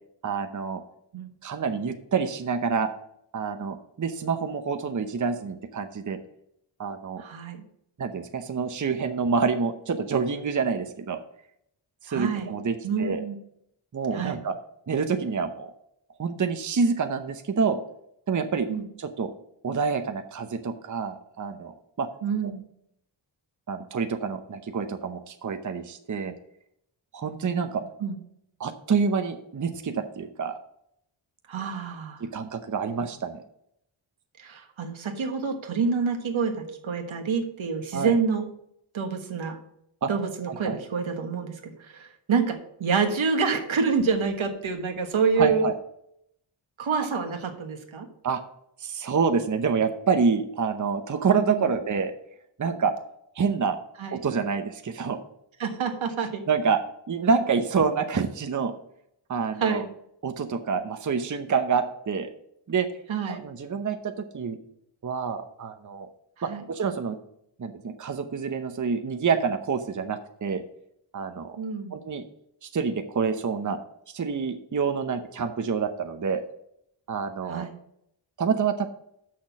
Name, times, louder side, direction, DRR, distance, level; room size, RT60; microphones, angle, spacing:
voice 1, 0.2-0.8 1.4-2.9 3.3-6.2 6.8-7.2 8.0-11.2 12.0-13.2 13.9-14.5 14.9-15.7 16.2-17.8 18.3-18.7 19.0-19.3 19.6-22.1 23.7-26.3 27.1-27.8 28.6-30.6 32.2-33.4 37.9-38.2 40.0-40.1 40.6-40.7 45.4-45.7 48.2-48.4 48.8-52.1 52.6-52.9 53.4-53.8 54.1-55.2 56.5-56.8 57.1-58.7 59.3-59.8 60.2-62.3 62.7-62.9 63.3-64.6 65.0-66.1 66.4-67.2 67.6-70.6 71.1-71.6 71.9-72.2 72.6-73.8 74.1-76.4 77.1-77.7 78.4-78.9, right 5 dB, 40° right, 7 dB, 0.8 m, -27 dB
voice 2, 7.2-7.6 12.1-12.5 12.8-13.4 14.1-14.4 18.7-18.8 22.2-22.6 28.0-28.2 31.5-32.2 34.4-38.5 38.9-39.6 40.1-45.7 46.8-48.1 51.4-51.8 54.0-54.2 55.6-56.4 59.6-59.8 63.1-63.4 66.5-66.6 71.6-71.9 77.5-77.7, right 5 dB, 75° right, 5 dB, 1.5 m, -27 dB
6.5 x 6.0 x 7.1 m, 0.73 s
wide cardioid pair, 85°, 48 cm